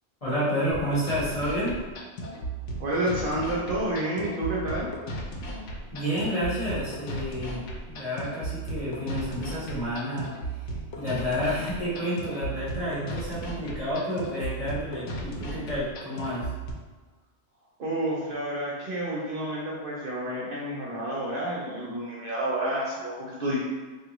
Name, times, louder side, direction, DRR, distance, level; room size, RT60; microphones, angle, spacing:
voice 1, 0.2-1.8 5.9-10.7 11.0-16.5, equal, 30° left, -10 dB, 1.3 m, -30 dB
sound 1, 0.7-16.7, right 1 dB, 90° left, 0.9 m, -35 dB
voice 2, 2.8-5.0 17.8-23.6, right 1 dB, 55° right, -5 dB, 0.7 m, -30 dB
3.4 x 2.4 x 2.9 m, 1.4 s
omnidirectional pair, 1.2 m